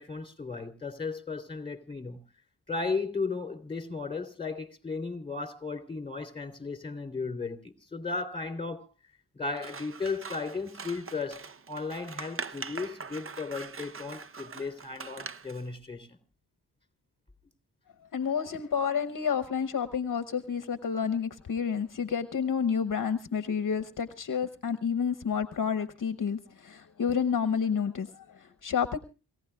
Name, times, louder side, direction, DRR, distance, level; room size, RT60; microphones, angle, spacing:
voice 1, 0.0-2.2 2.7-8.9 9.3-16.1, left 4 dB, 15° left, 3.2 m, -35 dB
Scissors, 9.5-15.6, right 5 dB, 35° right, 0.7 m, -42 dB
voice 2, 18.1-29.0, left 7 dB, 50° left, 1.0 m, -30 dB
27.5 x 16.0 x 2.3 m
cardioid pair, 70°, 40 cm